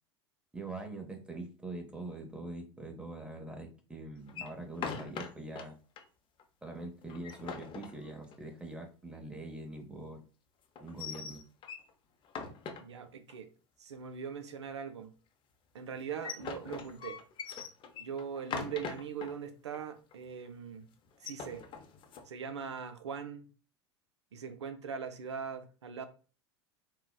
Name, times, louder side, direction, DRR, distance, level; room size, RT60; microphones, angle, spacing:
voice 1, 0.5-5.8 6.6-10.2 10.8-11.5, right 2 dB, 5° right, 0.7 m, -43 dB
sound 1, 4.3-5.6 6.0-6.1 6.4-6.5 7.0-8.5 10.7-11.9 12.2-13.3 15.9-19.3 19.7-19.8 20.1-20.5 21.1-22.3, left 6 dB, 35° left, 0.6 m, -41 dB
voice 2, 12.8-13.5 13.8-15.1 15.7-17.2 18.0-20.9 21.2-21.7 22.3-23.5 24.3-26.1, right 7 dB, 85° right, 0.4 m, -41 dB
3.7 x 2.0 x 2.2 m
hypercardioid pair, 85°, 14 cm